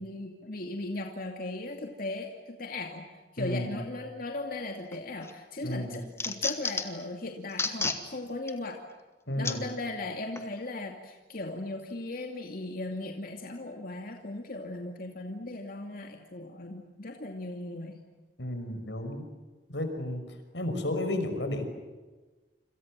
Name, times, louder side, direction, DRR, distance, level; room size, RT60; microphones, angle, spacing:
voice 1, 0.0-3.1 3.3-8.8 9.4-18.0, left 2 dB, 55° left, 2 dB, 2.6 m, -37 dB
voice 2, 3.4-3.8 5.6-6.0 9.3-9.7 18.4-19.2 19.7-21.7, left 1 dB, 85° left, 7 dB, 5.7 m, -32 dB
sound 1, 4.9-5.3 5.7-7.0 7.5-8.0 8.5-8.6 9.4-9.6 10.4-10.5, left 3 dB, 15° left, 2.2 m, -31 dB
29.0 x 27.0 x 7.6 m, 1.2 s
head